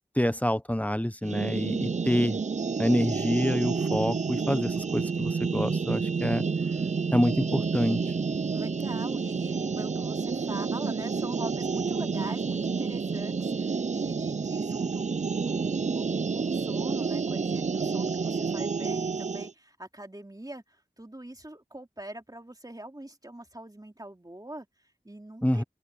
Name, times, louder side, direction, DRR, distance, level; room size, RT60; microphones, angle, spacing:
voice 1, 0.1-2.4 2.8-6.4 7.1-8.1 25.4-25.6, equal, 10° left, 1.0 m, -27 dB
sound 1, 1.2-19.5, right 5 dB, 45° right, 0.4 m, -29 dB
voice 2, 8.5-25.6, right 1 dB, 25° right, 2.7 m, -43 dB
wide cardioid pair, 50°, 16 cm